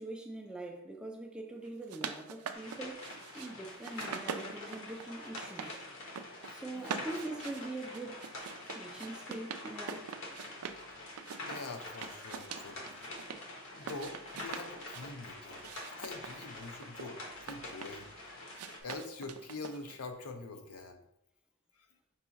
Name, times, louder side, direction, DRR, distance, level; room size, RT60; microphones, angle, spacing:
voice 1, 0.0-5.8 6.5-8.3 8.7-10.1, right 2 dB, 5° right, 0.4 m, -43 dB
sound 1, 1.6-3.5 3.8-5.7 6.0-6.5 6.8-10.8 11.2-13.4 13.8-15.1 15.6-18.1 18.5-20.0, right 6 dB, 80° right, 0.4 m, -44 dB
sound 2, 2.5-18.8, left 2 dB, 60° left, 1.0 m, -46 dB
voice 2, 6.5-7.0 11.4-13.1 13.7-18.1 18.8-21.0 21.7-21.9, left 3 dB, 80° left, 0.6 m, -45 dB
5.5 x 2.4 x 4.0 m
head